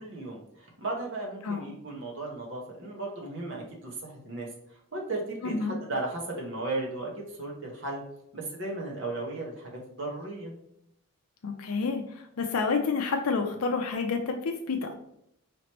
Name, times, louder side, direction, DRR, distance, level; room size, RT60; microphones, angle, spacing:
voice 1, 0.0-8.0 8.3-10.5, right 2 dB, 55° right, -1 dB, 1.1 m, -36 dB
voice 2, 5.4-5.8 11.4-14.9, left 4 dB, 75° left, 4 dB, 0.5 m, -29 dB
5.0 x 3.0 x 3.0 m, 0.77 s
head